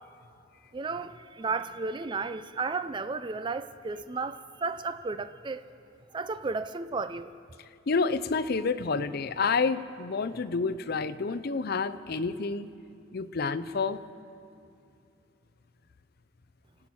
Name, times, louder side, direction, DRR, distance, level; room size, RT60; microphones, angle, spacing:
voice 1, 0.7-5.6 6.1-7.3, right 4 dB, 25° right, 0.4 m, -33 dB
voice 2, 7.9-12.7 13.1-14.0, left 4 dB, 50° left, 0.5 m, -29 dB
25.5 x 8.7 x 6.2 m
head